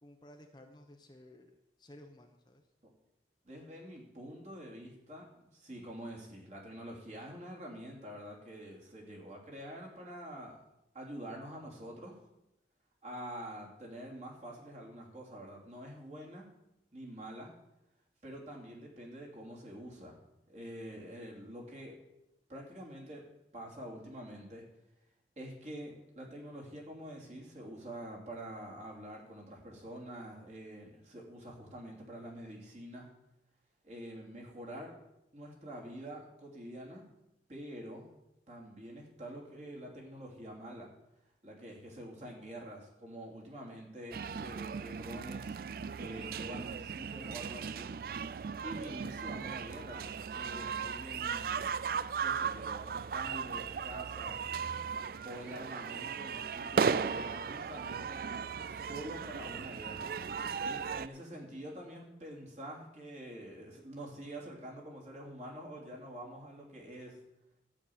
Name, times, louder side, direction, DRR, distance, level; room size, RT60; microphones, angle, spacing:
voice 1, 0.0-2.7, left 1 dB, 25° left, 4 dB, 0.9 m, -56 dB
voice 2, 3.4-5.3 5.5-10.6 10.9-12.2 13.0-16.5 16.9-17.5 18.2-20.2 20.5-21.9 22.5-23.2 23.5-24.6 25.4-33.1 33.8-35.0 35.3-37.0 37.5-38.0 38.5-40.9 41.4-45.6 46.0-47.9 48.6-51.8 52.2-54.4 55.2-58.2 58.7-60.1 60.6-67.2, right 1 dB, 40° right, -2 dB, 3.0 m, -46 dB
sound 1, 44.1-61.1, right 6 dB, 55° right, 0.3 m, -37 dB
12.5 x 6.1 x 8.7 m, 0.89 s
head